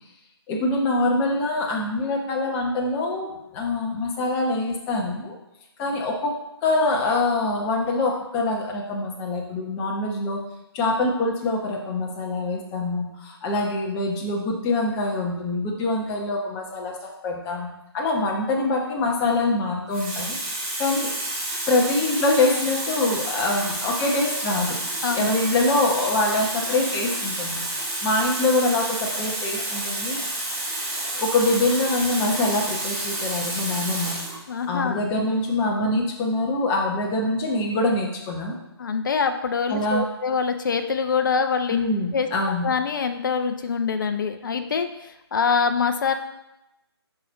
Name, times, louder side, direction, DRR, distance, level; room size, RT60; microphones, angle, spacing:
voice 1, 0.5-5.3 5.8-6.3 6.6-10.4 10.7-17.7 17.9-21.2 21.7-24.8 25.1-27.6 28.0-30.2 31.1-34.2 34.7-38.6 39.7-40.0 41.7-42.7, left 2 dB, 15° left, -1 dB, 0.9 m, -24 dB
Water tap faucet, 19.1-19.3 19.9-34.4 35.3-35.5, right 1 dB, 30° right, 2.4 m, -30 dB
voice 2, 34.5-35.0 38.8-41.8 42.1-42.3 42.6-46.1, left 5 dB, 50° left, 7 dB, 0.6 m, -24 dB
6.8 x 5.0 x 4.0 m, 0.92 s
figure-of-eight pair, 150°, 14 cm